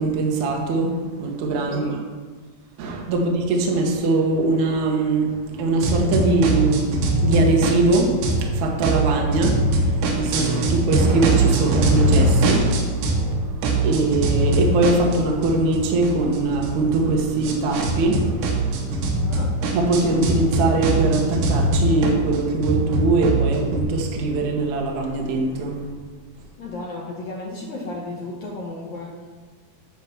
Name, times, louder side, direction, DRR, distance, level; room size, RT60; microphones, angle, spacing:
voice 1, 0.0-1.9 2.8-5.3 5.6-6.9 7.2-19.3 19.7-25.8, right 2 dB, 60° right, 0 dB, 2.2 m, -22 dB
sound 1, 5.8-8.5 8.8-13.3 13.6-23.8, right 2 dB, 80° right, 3.2 m, -22 dB
voice 2, 19.1-19.5 26.6-29.4, left 2 dB, 70° left, -3 dB, 1.8 m, -34 dB
9.5 x 4.2 x 7.0 m, 1.4 s
omnidirectional pair, 4.6 m